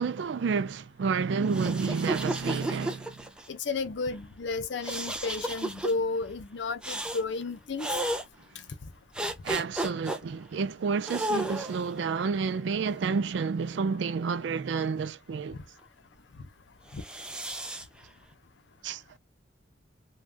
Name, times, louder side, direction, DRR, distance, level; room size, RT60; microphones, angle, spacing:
voice 1, 0.0-3.2 9.4-15.6 18.8-19.0, right 5 dB, 75° right, 0.4 m, -30 dB
sound 1, 1.4-3.5 4.8-5.9 6.8-7.2 7.8-8.2 9.1-10.2 11.0-11.9 12.7-13.8 16.9-17.8, right 1 dB, 5° right, 0.4 m, -33 dB
voice 2, 3.5-7.9 16.9-17.0, left 3 dB, 75° left, 0.6 m, -32 dB
2.4 x 2.3 x 3.3 m
head